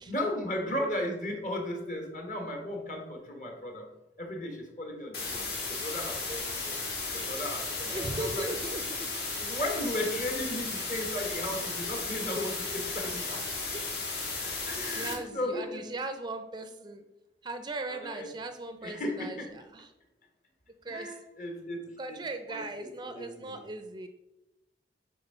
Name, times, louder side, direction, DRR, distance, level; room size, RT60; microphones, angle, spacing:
voice 1, 0.1-3.9 4.2-6.8 7.1-8.5 9.4-13.5 14.7-15.9 17.9-18.3 18.8-19.6 20.9-22.2 22.5-22.6 23.0-23.5, left 1 dB, 45° left, 2 dB, 1.5 m, -35 dB
sound 1, 5.1-15.1, left 3 dB, 60° left, 1.9 m, -35 dB
voice 2, 7.9-9.1 13.7-13.8 14.9-17.0 17.4-19.9 20.8-21.2 22.0-24.1, right 2 dB, 25° right, 8 dB, 0.5 m, -38 dB
8.1 x 3.6 x 5.5 m, 0.95 s
head